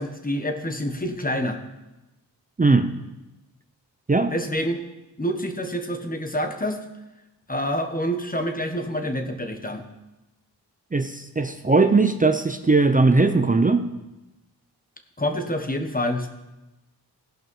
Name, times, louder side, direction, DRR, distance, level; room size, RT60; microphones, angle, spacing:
voice 1, 0.0-1.6 4.3-4.8 5.2-6.8 7.5-9.8 15.2-16.3, equal, 20° left, 6 dB, 1.4 m, -27 dB
voice 2, 2.6-2.9 4.1-4.3 10.9-13.9, right 3 dB, 20° right, 8 dB, 0.6 m, -19 dB
16.0 x 5.6 x 5.5 m, 1.0 s
cardioid pair, 70°, 40 cm